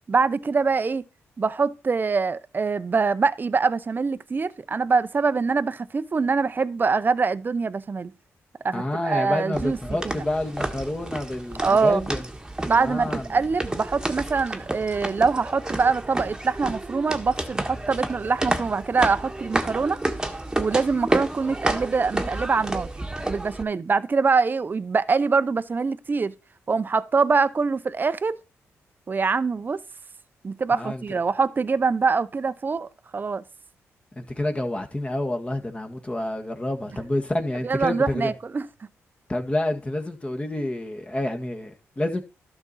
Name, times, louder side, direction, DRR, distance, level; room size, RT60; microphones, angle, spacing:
voice 1, 0.1-1.0 1.4-8.1 8.6-9.8 10.0-10.1 11.6-12.0 12.7-20.0 20.6-22.9 23.3-26.3 26.7-28.4 29.1-29.8 30.4-33.4 37.6-38.7, right 4 dB, 35° right, 0.7 m, -24 dB
voice 2, 8.7-12.2 12.7-13.3 30.7-31.0 34.1-38.3 39.3-42.2, left 1 dB, 20° left, 1.7 m, -28 dB
sound 1, 9.5-23.6, right 1 dB, 15° right, 1.5 m, -30 dB
12.0 x 5.9 x 4.2 m
cardioid pair, 65°, 5 cm